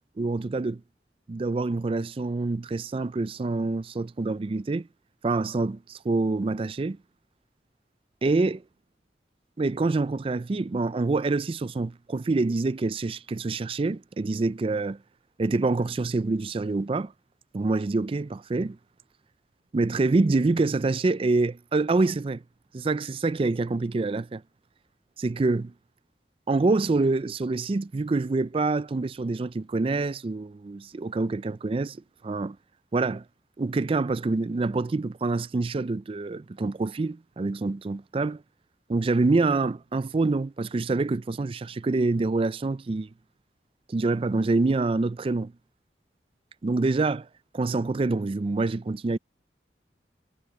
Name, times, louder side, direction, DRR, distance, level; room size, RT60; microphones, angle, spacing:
voice 1, 0.2-0.8 1.3-4.9 5.2-7.0 8.2-8.6 9.6-15.0 15.4-17.1 17.5-18.8 19.7-22.4 22.7-24.4 25.2-25.7 26.5-32.6 32.9-33.2 33.6-38.4 38.9-43.1 43.9-45.5 46.6-47.3 47.5-49.2, right 3 dB, 30° right, 0.4 m, -26 dB
head